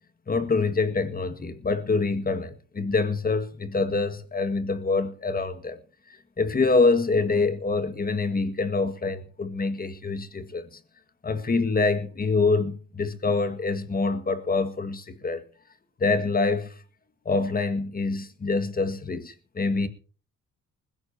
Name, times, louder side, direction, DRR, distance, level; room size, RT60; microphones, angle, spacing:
voice 1, 0.3-5.8 6.1-10.8 11.2-15.4 16.0-16.7 17.3-19.9, left 3 dB, 30° left, 1.9 m, -25 dB
20.5 x 15.5 x 2.9 m
cardioid pair, 90°, 30 cm